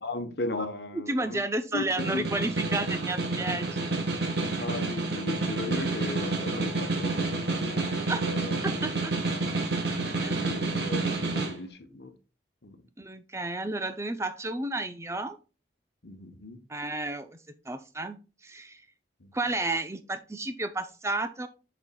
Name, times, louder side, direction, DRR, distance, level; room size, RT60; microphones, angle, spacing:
voice 1, 0.0-1.4 1.7-2.3 4.6-8.6 10.3-12.1 12.6-12.8 16.0-16.6 19.2-19.3, left 2 dB, 60° left, 1.1 m, -37 dB
voice 2, 0.9-4.1 8.1-8.3 8.6-9.1 10.2-10.8 13.0-15.4 16.7-17.4 17.7-18.8 19.3-21.5, right 2 dB, 15° right, 0.6 m, -32 dB
Snare drum, 1.8-11.5, right 3 dB, 65° right, 1.6 m, -29 dB
7.0 x 6.2 x 2.3 m
head